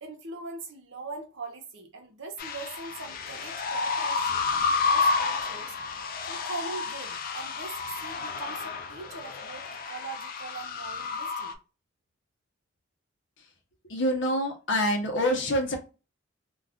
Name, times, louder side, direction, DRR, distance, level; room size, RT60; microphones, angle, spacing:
voice 1, 0.0-5.8 6.3-11.6, right 3 dB, 65° right, 0.8 m, -41 dB
sound 1, 2.4-11.5, left 4 dB, 45° left, 0.4 m, -30 dB
voice 2, 13.9-15.8, equal, 65° left, 0.7 m, -26 dB
2.4 x 2.3 x 3.5 m
head